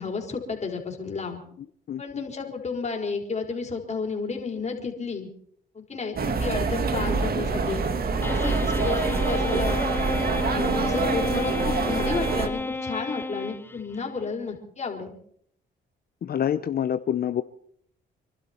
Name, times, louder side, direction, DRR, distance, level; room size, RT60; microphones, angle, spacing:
voice 1, 0.0-1.4 2.0-5.3 5.7-7.9 8.2-10.0 10.5-15.2, left 4 dB, 35° left, 1 dB, 4.1 m, -32 dB
voice 2, 1.9-2.2 7.1-7.2 16.2-17.4, left 9 dB, 50° left, 12 dB, 0.7 m, -27 dB
sound 1, 6.2-12.5, right 4 dB, 50° right, 1.9 m, -26 dB
sound 2, 8.2-14.0, left 3 dB, 10° left, 0.6 m, -31 dB
27.0 x 12.0 x 4.4 m, 0.63 s
cardioid pair, 90°, 20 cm